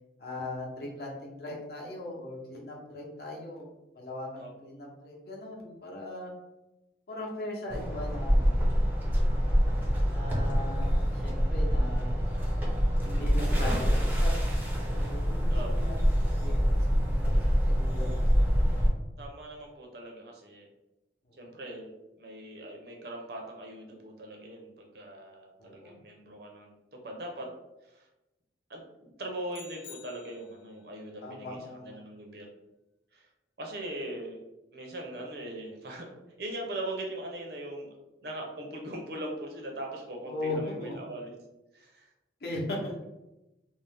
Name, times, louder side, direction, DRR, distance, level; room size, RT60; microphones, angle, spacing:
voice 1, 0.2-3.7 3.9-6.3 7.1-8.6 10.1-12.2 13.0-14.3 14.9-16.0 16.4-18.5 25.6-26.0 31.2-32.0 40.3-40.9 42.4-42.9, left 1 dB, 55° left, -3 dB, 0.8 m, -39 dB
sound 1, 7.7-18.9, equal, 10° right, 0.5 m, -26 dB
voice 2, 15.5-15.9 19.2-20.7 21.4-21.9 22.2-27.5 27.8-28.1 28.7-31.6 31.8-32.5 33.1-33.3 33.6-34.4 34.7-37.9 38.2-41.3 41.7-42.1, right 1 dB, 60° right, 1 dB, 0.6 m, -40 dB
sound 2, 29.5-30.8, left 7 dB, 90° left, 0.4 m, -50 dB
2.6 x 2.0 x 3.3 m, 0.97 s
head